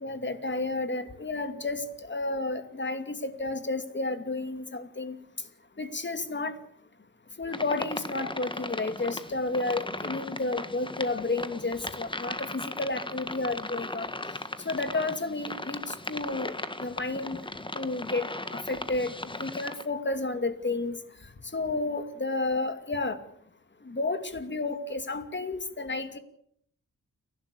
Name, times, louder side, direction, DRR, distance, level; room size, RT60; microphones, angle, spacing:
voice 1, 0.0-5.2 5.8-6.5 7.4-14.1 14.6-16.5 16.8-17.4 17.7-19.1 19.4-21.0 21.5-23.2 23.9-26.2, left 2 dB, 35° left, 9 dB, 2.6 m, -31 dB
sound 1, 7.5-19.8, left 2 dB, 15° left, 1.6 m, -37 dB
30.0 x 12.0 x 8.5 m, 0.69 s
cardioid pair, 85°, 33 cm